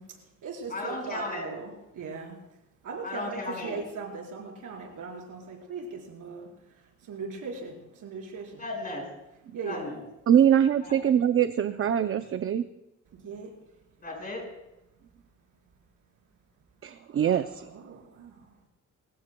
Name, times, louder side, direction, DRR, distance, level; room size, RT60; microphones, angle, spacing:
voice 1, 0.0-2.4 2.8-8.6 9.5-9.9 13.2-13.5 17.7-18.5, right 4 dB, 80° right, 0 dB, 4.5 m, -39 dB
voice 2, 0.7-1.5 3.0-3.8 8.6-9.0 9.6-10.0 10.9-11.0 14.0-14.4, left 2 dB, 30° left, 0 dB, 5.5 m, -35 dB
voice 3, 10.3-12.7 16.8-17.9, right 9 dB, 45° right, 9 dB, 0.6 m, -23 dB
28.5 x 15.5 x 2.3 m, 0.92 s
cardioid pair, 140°, 31 cm